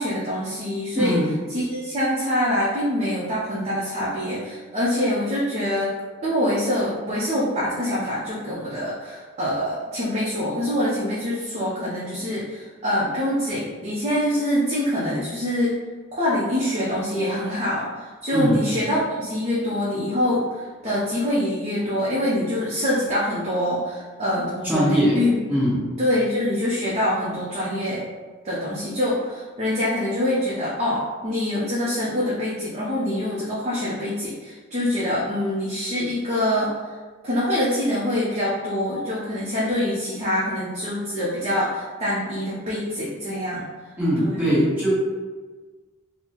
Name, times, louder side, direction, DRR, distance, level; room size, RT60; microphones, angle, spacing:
voice 1, 0.0-1.2 1.5-5.9 6.2-15.8 16.1-25.3 26.0-28.0 28.4-36.9 37.2-43.7 44.2-44.6, left 1 dB, 30° right, -8 dB, 0.6 m, -25 dB
voice 2, 0.9-1.3 18.3-18.6 24.6-25.2 25.5-25.9 44.0-44.9, equal, 10° right, -10 dB, 1.1 m, -21 dB
3.9 x 2.0 x 2.9 m, 1.4 s
head